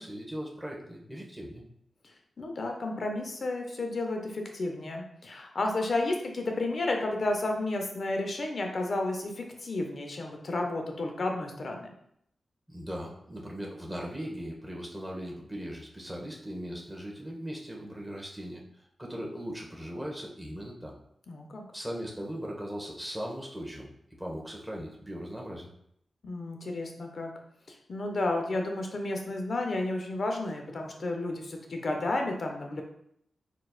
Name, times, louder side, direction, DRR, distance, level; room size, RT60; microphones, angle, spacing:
voice 1, 0.0-1.6 12.7-20.9 21.7-23.9 24.2-25.7, equal, ahead, -2 dB, 1.2 m, -39 dB
voice 2, 2.4-11.9 21.3-21.6 26.2-27.3 27.7-32.8, left 2 dB, 60° left, 3 dB, 0.8 m, -32 dB
4.3 x 4.1 x 2.4 m, 0.72 s
cardioid pair, 55°, 0 cm